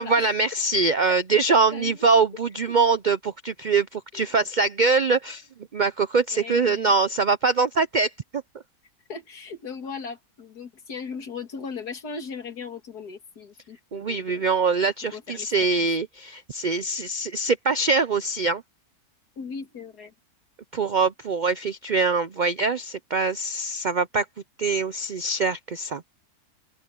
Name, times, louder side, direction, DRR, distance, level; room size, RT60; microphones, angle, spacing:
voice 1, 0.0-5.4 5.7-8.4 13.9-18.6 20.7-24.2 24.6-26.0, right 4 dB, 75° right, 0.4 m, -23 dB
voice 2, 6.3-6.9 9.1-14.5 15.1-15.9 19.4-20.1, left 5 dB, 90° left, 2.7 m, -38 dB
open air
omnidirectional pair, 1.6 m